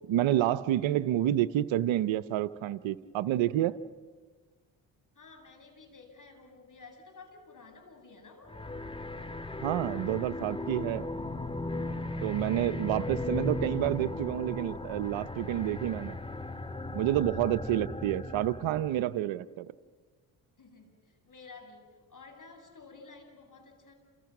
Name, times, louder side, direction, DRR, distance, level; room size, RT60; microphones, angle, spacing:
voice 1, 0.1-3.8 9.6-11.1 12.2-16.2 16.9-19.7, right 13 dB, 85° right, 0.9 m, -29 dB
voice 2, 5.1-8.6 20.6-23.9, left 4 dB, 45° left, 7.8 m, -52 dB
sound 1, 8.5-19.1, left 2 dB, 10° left, 2.1 m, -37 dB
30.0 x 28.0 x 6.1 m
supercardioid pair, 55°, 45 cm